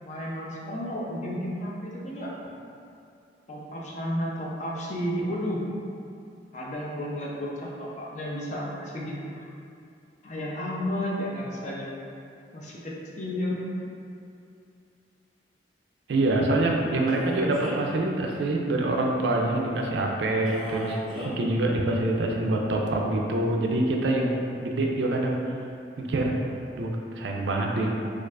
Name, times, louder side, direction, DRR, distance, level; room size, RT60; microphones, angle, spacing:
voice 1, 0.0-2.3 3.5-5.6 6.5-9.5 10.2-11.9 12.5-13.6, equal, 40° left, -4 dB, 0.5 m, -32 dB
voice 2, 16.1-21.0 21.2-24.3 24.6-25.4 26.0-26.3 26.8-27.9, right 2 dB, 70° right, 0 dB, 0.4 m, -25 dB
Male speech man speaking, 17.1-18.0 20.5-21.3, equal, ahead, 0.9 m, -37 dB
4.5 x 2.4 x 2.3 m, 2.5 s
head